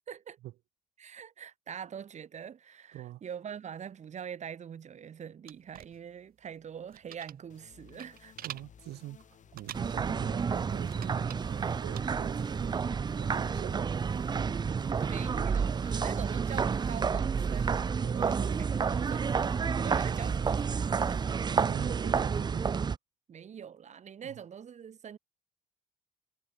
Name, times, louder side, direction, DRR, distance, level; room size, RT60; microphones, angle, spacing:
voice 1, 0.1-0.4 1.0-8.3 15.0-19.4 19.7-21.5 23.3-25.2, right 8 dB, 45° right, 3.9 m, -44 dB
voice 2, 2.9-3.2 8.4-9.3 9.5-12.8 13.2-14.0 17.5-17.7 18.0-18.6 19.8-20.3 21.5-22.7 24.2-24.4, right 15 dB, 75° right, 6.7 m, -45 dB
sound 1, 5.5-12.9, right 12 dB, 60° right, 1.7 m, -48 dB
sound 2, 7.5-22.9, left 8 dB, 45° left, 5.0 m, -58 dB
sound 3, 9.7-23.0, right 6 dB, 25° right, 0.6 m, -30 dB
cardioid pair, 110°, 17 cm